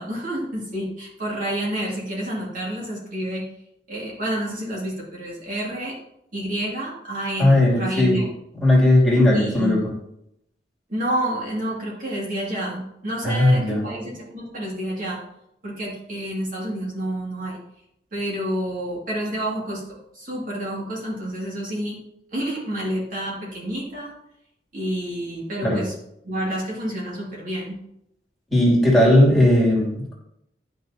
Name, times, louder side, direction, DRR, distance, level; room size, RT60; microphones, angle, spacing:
voice 1, 0.0-3.4 3.9-6.0 6.3-8.3 9.3-9.8 10.9-15.2 15.6-17.6 18.1-22.0 22.3-24.1 24.7-25.9 26.2-27.8, right 1 dB, 50° right, -5 dB, 2.4 m, -29 dB
voice 2, 7.4-8.2 8.6-9.8 13.2-13.8 25.6-25.8 28.5-30.1, left 1 dB, ahead, -6 dB, 2.7 m, -17 dB
11.5 x 5.9 x 2.8 m, 0.78 s
head